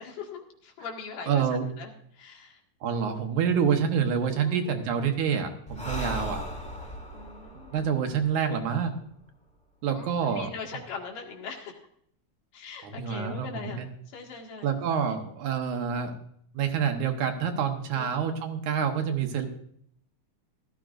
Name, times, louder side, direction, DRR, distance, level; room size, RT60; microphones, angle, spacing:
voice 1, 0.0-1.4 1.8-2.6 4.3-4.8 7.1-7.9 9.9-11.8 12.5-14.8 17.9-18.1, left 5 dB, 80° left, 1 dB, 3.5 m, -41 dB
voice 2, 1.3-1.7 2.8-6.4 7.7-8.9 9.8-10.5 12.8-13.9 14.6-16.1 16.5-19.5, right 7 dB, 70° right, 5 dB, 2.6 m, -27 dB
Breathing, 5.7-9.2, equal, 5° left, 1.0 m, -37 dB
16.5 x 13.5 x 2.5 m, 0.66 s
omnidirectional pair, 3.6 m